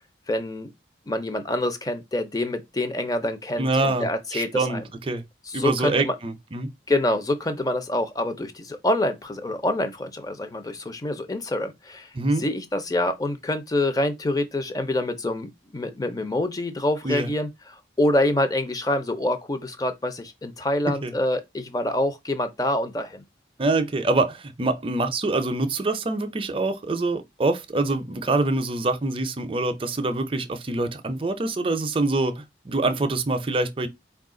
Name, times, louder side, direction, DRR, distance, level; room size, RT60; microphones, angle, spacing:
voice 1, 0.3-0.7 1.1-4.8 5.5-6.1 6.9-12.1 12.4-23.2, left 1 dB, 20° left, 0.5 m, -26 dB
voice 2, 3.6-5.2 5.5-6.7 12.1-12.4 17.0-17.3 21.0-21.1 23.6-33.9, right 2 dB, 30° right, 0.5 m, -25 dB
4.3 x 2.4 x 3.7 m
head